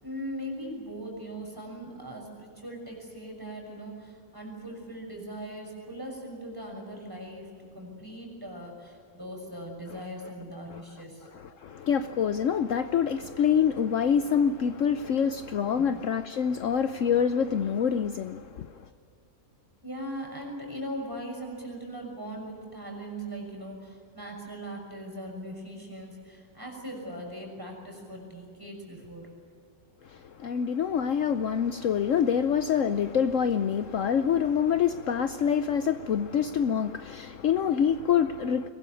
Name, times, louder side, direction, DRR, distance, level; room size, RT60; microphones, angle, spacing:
voice 1, 0.0-11.3 15.8-15.9 19.8-29.3, right 1 dB, 15° right, 6.4 m, -40 dB
voice 2, 11.2-18.8 30.0-38.7, left 7 dB, 65° left, 1.0 m, -26 dB
23.0 x 21.0 x 9.2 m
omnidirectional pair, 1.5 m